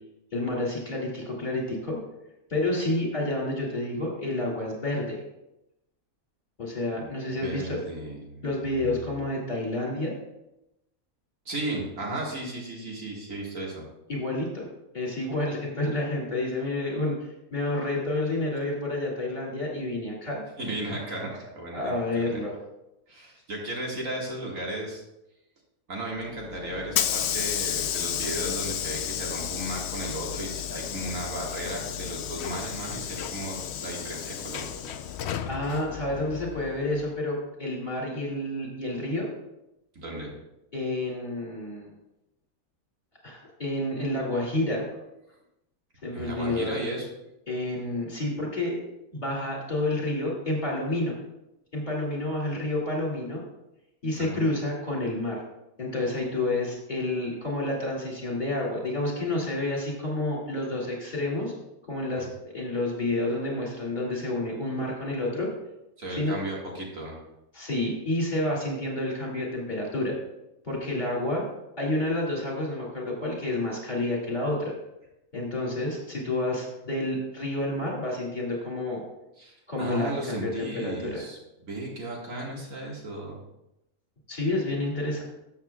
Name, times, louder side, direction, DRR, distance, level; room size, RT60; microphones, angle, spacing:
voice 1, 0.3-2.0 2.5-5.2 6.6-7.8 8.4-10.1 14.1-14.6 14.9-17.1 17.5-20.4 21.7-22.5 35.5-39.3 40.7-41.9 43.2-44.8 46.0-46.8 47.5-48.8 49.1-51.1 51.7-53.4 54.0-55.4 55.8-61.5 61.9-65.5 66.1-66.3 67.5-70.1 70.6-71.4 71.8-74.7 75.3-79.0 79.7-81.2 84.3-85.2, left 2 dB, 30° left, -3 dB, 2.5 m, -29 dB
voice 2, 7.4-8.4 8.8-9.1 11.5-13.8 20.6-22.4 23.1-25.0 25.9-34.9 39.9-40.3 46.1-47.1 54.2-54.4 62.2-62.3 66.0-67.2 79.4-81.4 81.7-83.4, right 1 dB, 70° right, -2 dB, 2.2 m, -35 dB
Hiss / Sliding door, 26.2-37.1, left 9 dB, 65° left, 0.7 m, -32 dB
13.0 x 7.2 x 2.3 m, 0.89 s
omnidirectional pair, 1.5 m